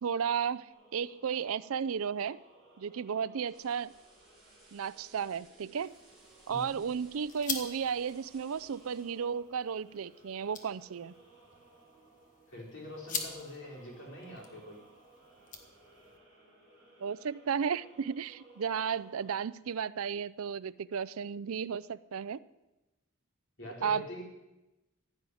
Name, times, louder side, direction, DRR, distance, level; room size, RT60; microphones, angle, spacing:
voice 1, 0.0-2.4 2.8-3.9 4.7-5.9 6.5-11.1 17.0-22.4 23.8-24.2, right 7 dB, 75° right, 18 dB, 0.4 m, -34 dB
sound 1, 0.7-19.4, right 1 dB, 20° left, 4.0 m, -61 dB
sound 2, 3.4-9.3, right 2 dB, ahead, 3.9 m, -62 dB
sound 3, 5.8-16.2, left 5 dB, 35° left, 1.5 m, -45 dB
voice 2, 12.5-14.8 23.6-24.2, left 2 dB, 55° left, -2 dB, 4.4 m, -44 dB
15.5 x 6.4 x 9.9 m, 1.0 s
head